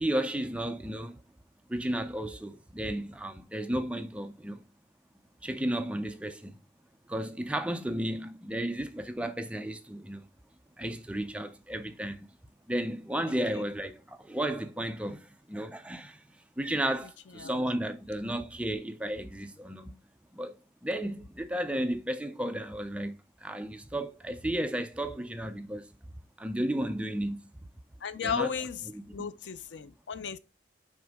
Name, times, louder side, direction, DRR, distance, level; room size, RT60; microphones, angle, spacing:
voice 1, 0.0-1.2 1.7-4.6 5.4-6.5 7.1-10.3 10.8-12.3 12.7-16.2 16.6-20.0 20.3-20.6 20.8-25.9 26.4-27.5 28.2-28.6 28.9-29.3, right 1 dB, 5° right, 0.4 m, -33 dB
voice 2, 28.0-28.8 29.1-30.4, left 7 dB, 75° left, 0.5 m, -34 dB
6.1 x 4.4 x 3.5 m
head